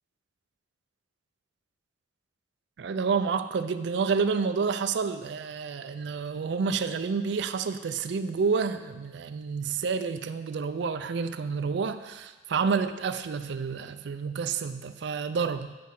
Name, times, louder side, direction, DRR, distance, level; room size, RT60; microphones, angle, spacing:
voice 1, 2.8-15.7, right 5 dB, 60° right, 10 dB, 0.4 m, -29 dB
8.3 x 6.1 x 3.8 m, 1.2 s
head